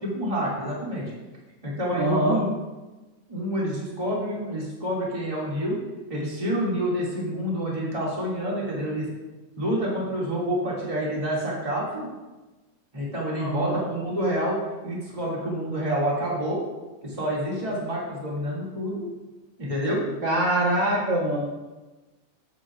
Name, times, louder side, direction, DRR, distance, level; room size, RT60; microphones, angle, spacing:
voice 1, 0.0-1.0 1.6-2.4 3.3-5.7 6.1-9.0 9.6-12.1 12.9-14.6 14.8-16.6 17.0-19.0 19.6-20.0, equal, 15° right, -6 dB, 1.8 m, -28 dB
voice 2, 1.9-2.5 13.4-13.9 20.2-21.4, right 1 dB, 55° right, -3 dB, 1.3 m, -24 dB
11.0 x 7.9 x 2.4 m, 1.2 s
omnidirectional pair, 3.5 m